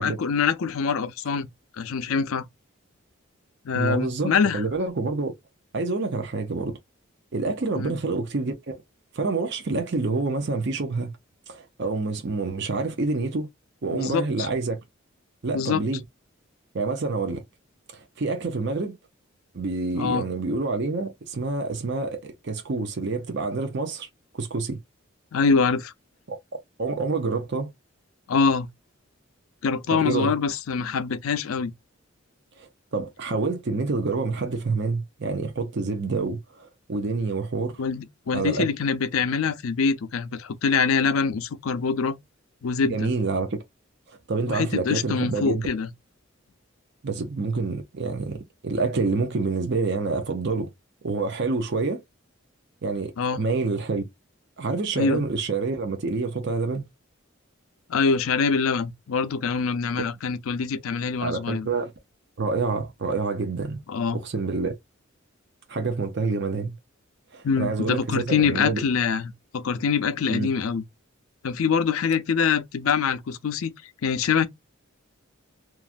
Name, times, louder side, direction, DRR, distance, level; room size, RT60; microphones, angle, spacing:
voice 1, 0.0-1.5 1.8-2.5 3.6-4.6 7.8-7.9 13.9-14.5 15.5-15.8 19.9-20.3 25.3-25.9 28.3-28.7 29.6-31.7 37.8-42.2 42.6-43.1 44.5-45.9 53.2-53.4 55.0-55.2 57.9-61.7 63.9-64.2 67.4-70.8 71.4-73.7 74.0-74.5, left 5 dB, 90° left, 0.5 m, -24 dB
voice 2, 3.7-5.3 5.7-6.8 7.3-8.8 9.1-11.1 11.5-13.5 13.8-14.8 15.4-16.0 16.7-17.4 17.9-19.0 19.5-24.1 24.3-24.8 26.3-26.4 26.8-27.7 29.9-30.3 32.6-37.8 38.3-38.7 42.9-43.6 44.1-45.7 47.0-50.7 51.0-52.0 52.8-54.0 54.6-56.9 60.0-60.1 61.2-61.9 62.4-63.8 64.1-64.7 65.7-66.7 67.3-68.8 70.3-70.5, right 3 dB, 55° right, 0.6 m, -27 dB
3.0 x 2.4 x 2.4 m
head